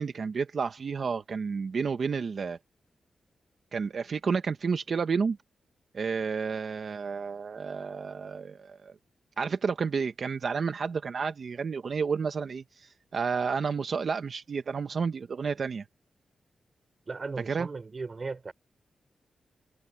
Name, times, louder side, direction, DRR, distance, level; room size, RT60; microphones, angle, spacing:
voice 1, 0.0-2.6 3.7-5.4 5.9-8.9 9.4-15.8 17.5-17.7, right 5 dB, 50° right, 1.0 m, -31 dB
voice 2, 17.1-18.5, right 4 dB, 35° right, 4.1 m, -36 dB
wide cardioid pair, 145°, 0 cm